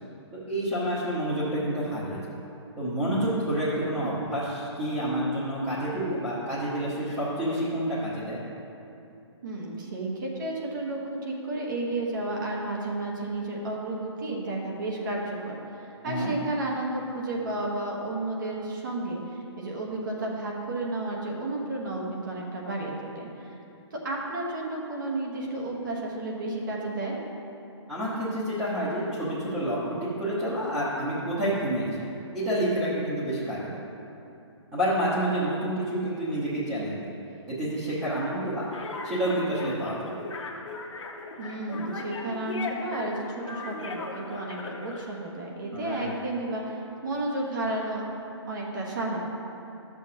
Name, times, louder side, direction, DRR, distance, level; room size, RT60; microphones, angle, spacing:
voice 1, 0.5-2.4 2.8-8.4 16.0-16.3 27.9-32.1 32.3-33.7 34.7-37.1 37.5-38.7 39.0-40.2 45.7-46.2, right 1 dB, 10° right, -12 dB, 1.1 m, -29 dB
voice 2, 9.4-15.5 16.0-23.6 23.9-27.2 41.4-48.0 48.5-49.2, right 2 dB, 45° right, -2 dB, 1.2 m, -32 dB
sound 1, 38.7-45.0, left 3 dB, 80° left, 1.1 m, -37 dB
11.5 x 7.0 x 2.8 m, 2.8 s
hypercardioid pair, 170°, 15 cm